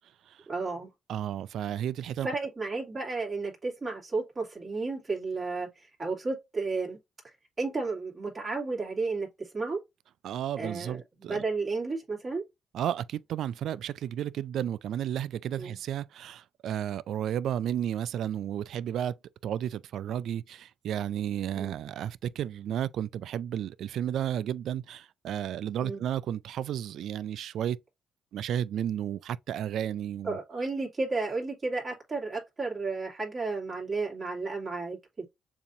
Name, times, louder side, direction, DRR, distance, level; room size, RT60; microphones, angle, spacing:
voice 1, 0.5-0.9 2.2-7.0 7.6-9.8 10.6-12.4 15.6-15.8 21.5-21.8 25.8-26.0 30.2-35.2, right 3 dB, 30° right, 2.7 m, -33 dB
voice 2, 1.1-2.3 10.2-11.4 12.7-19.1 19.4-27.8 28.3-30.4, right 10 dB, 75° right, 0.3 m, -32 dB
7.0 x 2.8 x 2.7 m
cardioid pair, 90°, 0 cm